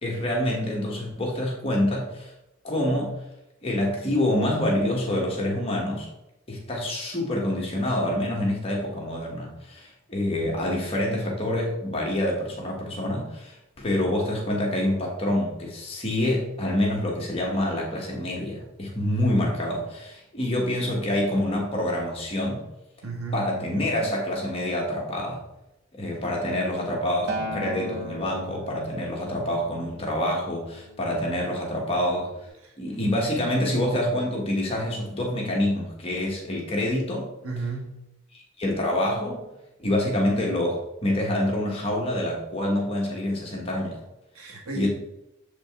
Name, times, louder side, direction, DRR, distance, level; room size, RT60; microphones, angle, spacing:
voice 1, 0.0-2.3 2.6-3.1 3.6-6.1 6.5-22.6 23.3-25.4 25.9-32.3 32.8-37.3 38.3-39.4 39.8-44.0 44.7-44.9, left 1 dB, 25° left, -2 dB, 1.4 m, -26 dB
voice 2, 23.0-23.5 32.6-32.7 37.4-38.1 44.3-44.9, right 3 dB, 85° right, 1 dB, 1.5 m, -33 dB
Acoustic guitar, 27.3-31.6 32.4-32.5, left 1 dB, 55° right, 0.9 m, -38 dB
7.5 x 5.2 x 3.6 m, 0.89 s
head